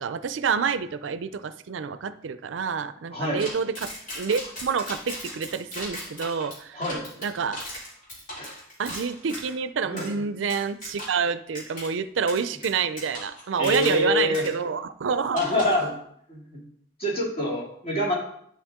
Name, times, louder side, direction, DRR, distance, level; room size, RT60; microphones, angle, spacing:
voice 1, 0.0-3.9 4.2-6.8 7.2-7.6 8.8-15.4, right 6 dB, 80° right, 13 dB, 0.4 m, -28 dB
sound 1, 3.4-9.5 10.0-10.1 10.5-11.3 11.5-11.9 12.3-14.1 14.3-14.5 15.4-15.9, left 1 dB, 50° left, 3.3 m, -38 dB
voice 2, 13.6-14.4 15.3-15.9 16.3-16.6 17.0-18.2, left 1 dB, 35° left, -4 dB, 2.6 m, -25 dB
11.0 x 5.8 x 3.6 m, 0.71 s
head